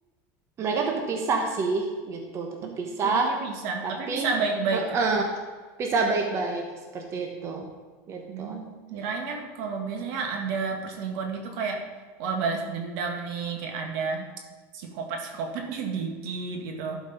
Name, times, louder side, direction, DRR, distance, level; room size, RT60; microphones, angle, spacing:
voice 1, 0.6-3.5 3.8-4.3 4.7-5.4 5.8-7.6 8.1-8.6, right 3 dB, 35° right, 2 dB, 1.2 m, -28 dB
voice 2, 3.0-5.0 8.3-11.8 12.2-14.3 14.7-17.0, right 5 dB, 70° right, 3 dB, 1.7 m, -31 dB
11.5 x 5.2 x 5.4 m, 1.4 s
supercardioid pair, 140°, 8 cm